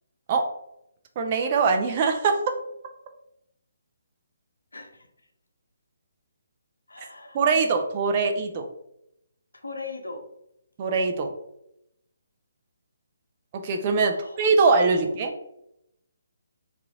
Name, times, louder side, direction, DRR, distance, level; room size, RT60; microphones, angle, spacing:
voice 1, 1.2-2.5 7.3-8.7 10.8-11.3 13.6-15.3, right 4 dB, 35° right, 4 dB, 0.4 m, -22 dB
voice 2, 4.7-5.1 6.9-7.4 9.6-10.2 14.0-14.4 15.0-15.1, left 3 dB, 75° left, 5 dB, 0.6 m, -39 dB
3.0 x 2.4 x 3.6 m, 0.80 s
figure-of-eight pair, 140°, 0 cm